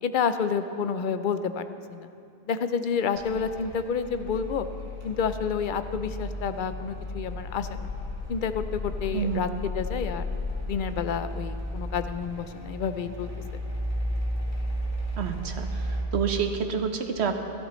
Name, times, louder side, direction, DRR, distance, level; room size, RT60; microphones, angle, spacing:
voice 1, 0.0-2.1 2.5-4.7 5.0-7.9 8.3-10.3 10.7-13.3, left 6 dB, 60° left, 10 dB, 0.7 m, -29 dB
sound 1, 3.2-16.1, left 1 dB, 25° left, 1.8 m, -34 dB
voice 2, 9.1-9.4 15.2-17.4, right 6 dB, 85° right, 6 dB, 1.1 m, -28 dB
15.5 x 14.0 x 3.1 m, 2.6 s
omnidirectional pair, 1.1 m